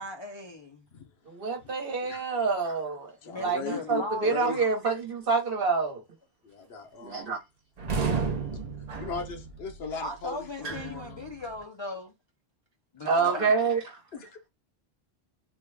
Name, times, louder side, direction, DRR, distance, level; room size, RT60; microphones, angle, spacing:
voice 1, 0.0-0.9 3.2-4.6 10.0-12.1 12.9-13.8, left 1 dB, 40° left, 0.4 m, -38 dB
voice 2, 1.3-3.1 3.4-6.0 7.0-7.4 13.0-13.8, right 4 dB, 60° right, 1.3 m, -27 dB
voice 3, 2.0-2.4 3.2-4.7 6.4-7.3 9.0-11.2 13.1-13.4 14.1-14.5, left 4 dB, 80° left, 1.0 m, -38 dB
sound 1, 7.8-11.6, right 5 dB, 45° right, 0.6 m, -33 dB
3.5 x 2.2 x 3.3 m
omnidirectional pair, 1.0 m